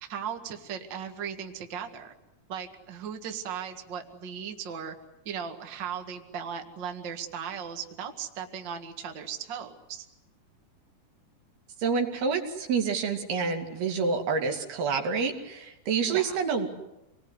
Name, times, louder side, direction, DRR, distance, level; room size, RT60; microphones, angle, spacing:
voice 1, 0.0-2.1 2.5-4.9 5.3-10.1 16.0-16.4, right 8 dB, 40° right, 5 dB, 2.0 m, -37 dB
voice 2, 11.8-16.7, right 5 dB, 80° right, 3 dB, 4.5 m, -28 dB
27.5 x 20.5 x 9.8 m, 0.92 s
omnidirectional pair, 4.4 m